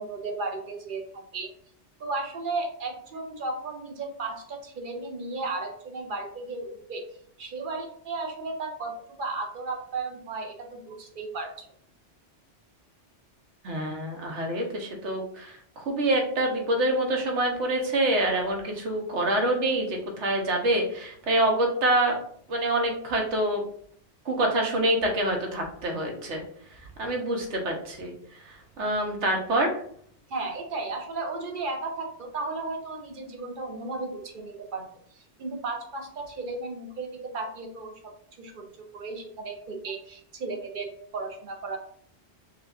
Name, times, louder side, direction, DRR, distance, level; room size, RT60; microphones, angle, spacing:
voice 1, 0.0-1.5 2.0-7.0 7.4-8.9 9.2-11.5 30.3-34.8 35.4-37.9 38.3-41.8, right 3 dB, 55° right, 4 dB, 0.8 m, -34 dB
voice 2, 13.6-22.2 22.5-23.6 24.2-26.4 26.7-29.8, right 1 dB, 85° right, 2 dB, 1.2 m, -26 dB
6.1 x 2.4 x 2.4 m, 0.62 s
omnidirectional pair, 1.1 m